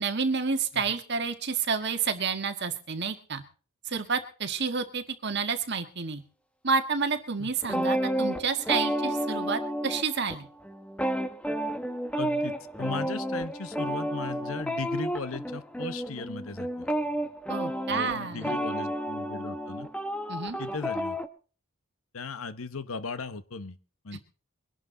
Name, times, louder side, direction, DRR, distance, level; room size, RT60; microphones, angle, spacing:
voice 1, 0.0-3.4 3.9-6.2 6.6-10.5 17.5-18.6 20.3-20.6, right 5 dB, 55° right, 7 dB, 1.7 m, -29 dB
sound 1, 7.6-10.4 10.6-21.3, right 1 dB, 5° left, 1.0 m, -31 dB
voice 2, 12.2-16.9 17.9-19.9 20.6-21.2 22.1-23.8 24.0-24.2, left 4 dB, 80° left, 13 dB, 1.1 m, -37 dB
23.0 x 11.0 x 3.9 m, 0.38 s
head